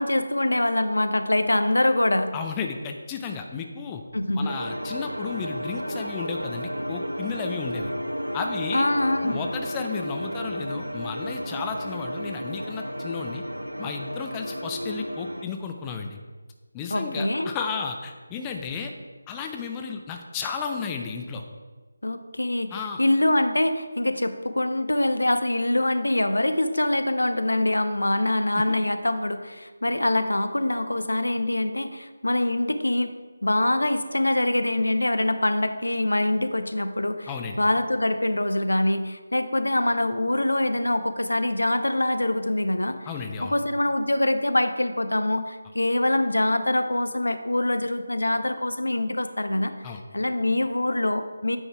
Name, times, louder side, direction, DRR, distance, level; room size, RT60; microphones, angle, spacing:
voice 1, 0.0-2.3 4.1-4.5 8.7-9.4 16.9-17.5 22.0-33.1 33.4-37.3 37.6-43.0 43.4-49.7 50.1-51.6, left 1 dB, 75° left, 9 dB, 0.6 m, -24 dB
voice 2, 2.3-4.0 4.4-7.9 8.3-8.9 9.2-13.4 13.8-16.2 16.7-18.9 19.3-21.4 22.7-23.0 28.5-28.6 37.3-37.6 43.1-43.5 49.8-50.0, left 5 dB, 15° left, 4 dB, 0.4 m, -33 dB
sound 1, 4.5-15.4, equal, 90° right, 0.6 m, -33 dB
8.9 x 3.9 x 4.7 m, 1.3 s
figure-of-eight pair, 160°, 0 cm